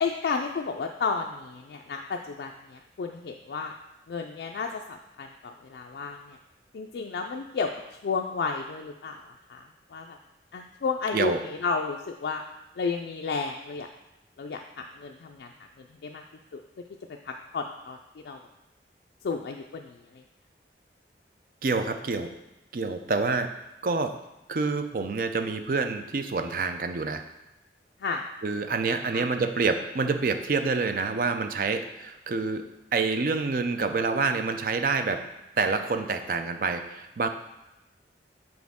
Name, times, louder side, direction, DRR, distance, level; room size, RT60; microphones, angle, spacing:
voice 1, 0.0-3.7 4.1-6.4 6.7-7.7 8.0-9.6 9.9-10.2 10.5-12.4 12.8-13.9 14.4-15.5 16.0-16.2 16.5-16.6 17.3-18.0 18.2-18.4 19.2-20.0 28.0-28.2 28.9-29.2, left 4 dB, 75° left, 2 dB, 0.4 m, -32 dB
voice 2, 21.6-22.3 22.7-23.5 23.8-24.1 24.5-27.2 28.4-35.2 35.6-37.3, right 4 dB, 50° right, 7 dB, 0.4 m, -27 dB
6.2 x 4.7 x 3.6 m, 0.98 s
head